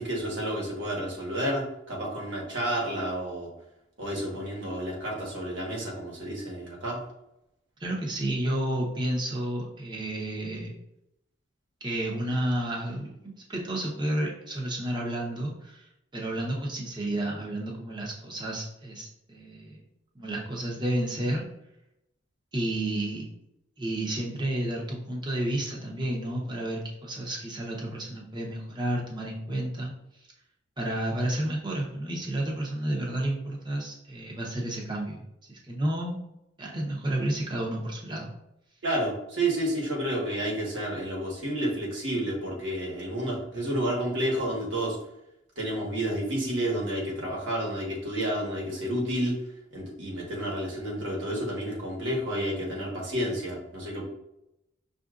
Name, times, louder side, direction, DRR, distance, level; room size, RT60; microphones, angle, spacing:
voice 1, 0.0-3.5 4.0-7.0 38.8-45.0 45.6-49.4 49.7-54.0, right 1 dB, 80° right, -3 dB, 1.2 m, -30 dB
voice 2, 7.8-10.7 11.8-19.8 20.1-21.4 22.5-23.3 23.8-29.9 30.8-36.2 36.6-38.3, right 1 dB, 25° right, -2 dB, 0.8 m, -31 dB
6.0 x 2.6 x 2.4 m, 0.85 s
head